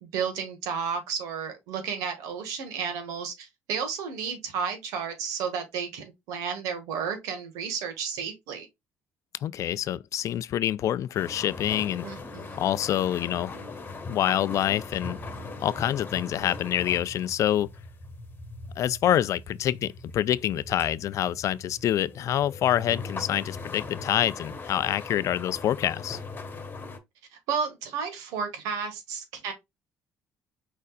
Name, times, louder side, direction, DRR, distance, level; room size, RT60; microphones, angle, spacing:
voice 1, 0.0-8.7 12.0-12.6 27.5-29.5, right 6 dB, 85° right, 1.7 m, -32 dB
voice 2, 9.4-12.1 12.6-13.6 14.1-15.2 15.6-17.7 18.8-26.2, left 11 dB, 60° left, 0.4 m, -26 dB
sound 1, 11.2-27.0, left 3 dB, 35° left, 1.5 m, -40 dB
5.1 x 4.2 x 2.3 m
supercardioid pair, 75°, 6 cm